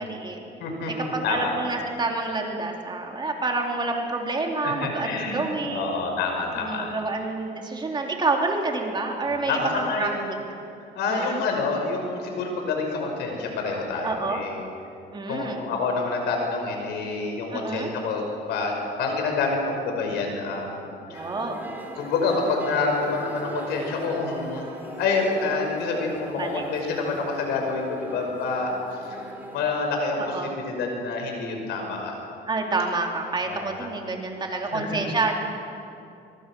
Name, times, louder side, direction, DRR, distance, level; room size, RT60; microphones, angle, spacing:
voice 1, 0.0-0.4 1.1-6.0 6.5-10.3 11.1-11.4 14.0-14.4 15.1-15.6 17.5-17.9 21.1-21.6 26.4-26.6 30.2-30.5 32.5-35.4, right 3 dB, 25° right, 1 dB, 3.3 m, -28 dB
voice 2, 0.6-1.6 4.6-6.9 9.5-10.3 10.8-14.6 15.3-21.3 22.0-24.7 25.0-28.7 29.1-29.2 29.5-32.1 33.5-33.9 34.7-35.0, left 3 dB, 85° left, 2 dB, 5.7 m, -27 dB
sound 1, 21.1-29.8, right 1 dB, 10° right, 4.3 m, -39 dB
24.0 x 23.5 x 6.3 m, 2.6 s
cardioid pair, 110°, 17 cm